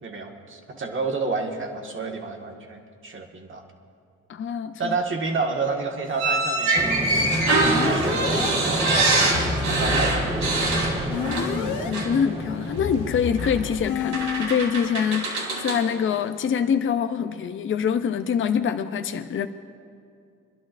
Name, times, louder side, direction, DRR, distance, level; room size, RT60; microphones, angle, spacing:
voice 1, 0.0-3.6 4.8-6.9 7.7-8.2 8.6-9.0 9.6-10.5, right 4 dB, 40° right, 2 dB, 1.7 m, -30 dB
voice 2, 4.3-4.9 11.2-19.5, left 7 dB, 40° left, 7 dB, 0.6 m, -25 dB
sound 1, 6.2-11.7 11.9-12.2 13.4-13.5 14.1-15.9, right 2 dB, 70° right, 3.0 m, -24 dB
sound 2, 6.7-13.9, right 1 dB, 20° right, 1.5 m, -30 dB
sound 3, 7.6-8.5 9.3-11.9 12.8-14.4, left 6 dB, 85° left, 1.0 m, -30 dB
27.5 x 11.5 x 2.6 m, 2.4 s
cardioid pair, 90°, 30 cm